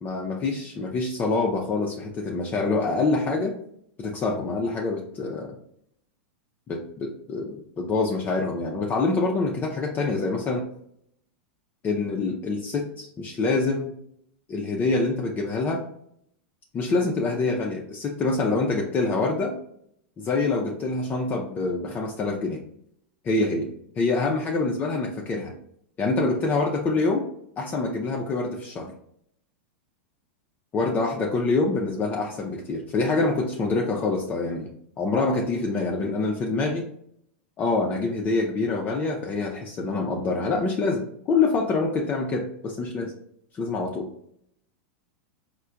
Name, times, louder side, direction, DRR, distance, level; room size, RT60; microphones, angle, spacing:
voice 1, 0.0-3.5 4.0-5.5 6.7-10.6 11.8-14.0 14.5-15.8 16.7-19.6 20.2-22.6 23.2-23.7 24.0-25.5 26.0-27.2 27.6-28.9 30.7-34.7 35.0-36.8 37.6-43.1 43.5-44.1, left 3 dB, 25° left, -1 dB, 0.5 m, -26 dB
4.3 x 2.1 x 2.4 m, 0.71 s
hypercardioid pair, 105°, 6 cm